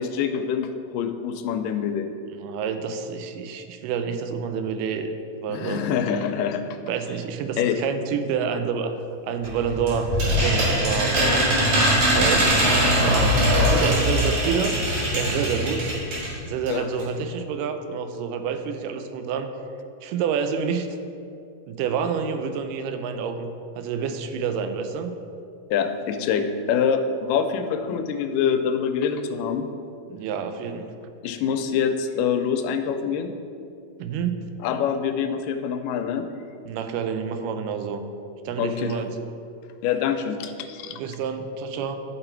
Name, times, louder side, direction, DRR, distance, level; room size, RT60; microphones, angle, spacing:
voice 1, 0.0-2.1 5.5-6.8 7.6-7.8 16.7-16.9 25.7-29.7 31.2-33.4 34.6-36.3 38.6-39.0 39.8-41.0, left 7 dB, 90° left, 7 dB, 2.2 m, -25 dB
voice 2, 2.3-5.1 5.4-6.0 6.9-9.0 9.2-14.8 15.1-15.9 16.5-19.5 20.0-20.9 21.7-23.5 23.8-25.1 30.1-30.9 34.0-34.4 36.7-38.0 38.5-39.1 40.8-42.0, right 6 dB, 90° right, 8 dB, 2.2 m, -28 dB
sound 1, 9.4-16.3 16.7-16.8 17.0-17.1, equal, 65° right, 3.5 m, -21 dB
11.0 x 4.0 x 4.4 m, 2.6 s
omnidirectional pair, 3.7 m